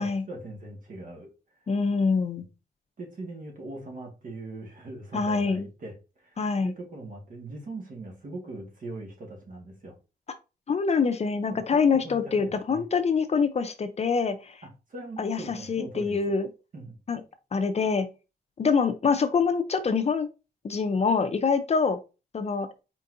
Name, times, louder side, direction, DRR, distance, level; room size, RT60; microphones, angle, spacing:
voice 1, 0.0-1.3 3.0-5.9 6.2-6.4 6.6-9.9 11.5-12.8 14.6-16.3 16.7-17.0, right 2 dB, 55° right, 1.6 m, -41 dB
voice 2, 1.7-2.5 5.1-5.7 6.4-6.7 10.7-14.6 15.2-16.5 17.1-17.2 17.5-18.1 18.6-20.3 20.6-22.0 22.3-22.7, left 5 dB, 40° left, 0.5 m, -25 dB
4.5 x 4.0 x 2.5 m
cardioid pair, 110°, 17 cm